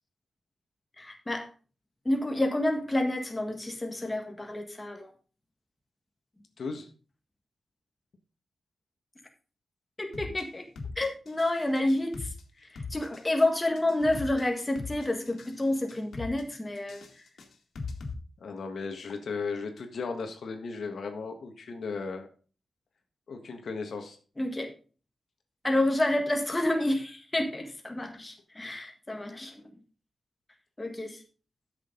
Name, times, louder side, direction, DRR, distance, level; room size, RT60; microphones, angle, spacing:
voice 1, 1.0-1.5 2.0-5.1 10.0-10.6 11.0-12.3 12.7-17.0 24.4-24.7 25.6-29.6 30.8-31.2, left 1 dB, 15° left, 3 dB, 1.6 m, -29 dB
voice 2, 6.6-6.9 18.4-22.3 23.3-24.2, left 4 dB, 60° left, 5 dB, 1.5 m, -36 dB
sound 1, 10.1-10.4 10.8-11.5 11.8-12.4 12.8-13.4 13.8-14.4 14.8-15.5 15.8-16.4 16.8-18.1, left 4 dB, 85° left, 2.1 m, -39 dB
12.5 x 6.5 x 3.9 m, 0.37 s
wide cardioid pair, 160°, 0 cm